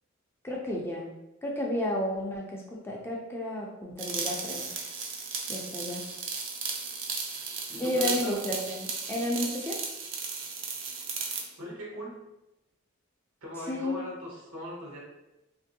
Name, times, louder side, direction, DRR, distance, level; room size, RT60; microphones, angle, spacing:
voice 1, 0.4-1.1 1.4-4.7 5.5-6.0 7.8-9.8 13.7-14.0, left 1 dB, 10° left, -2 dB, 0.4 m, -32 dB
sound 1, 4.0-11.5, right 5 dB, 60° right, 0.4 m, -35 dB
voice 2, 7.7-8.4 11.6-12.3 13.4-15.0, left 1 dB, 80° right, -3 dB, 1.0 m, -39 dB
3.0 x 2.5 x 2.6 m, 0.96 s
head